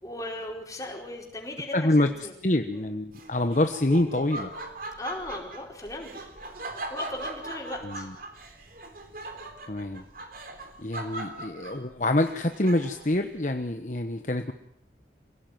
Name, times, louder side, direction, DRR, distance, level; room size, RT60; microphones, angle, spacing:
voice 1, 0.0-2.3 2.7-2.8 5.0-6.3 6.9-8.1, left 1 dB, 20° left, 0 dB, 4.9 m, -37 dB
voice 2, 1.7-2.1 2.4-4.5 7.8-8.1 9.7-10.0 10.8-14.5, left 1 dB, 45° left, 6 dB, 1.2 m, -26 dB
Laughter, 3.1-13.2, right 2 dB, 50° right, 3.5 m, -40 dB
26.5 x 17.5 x 9.4 m, 0.75 s
head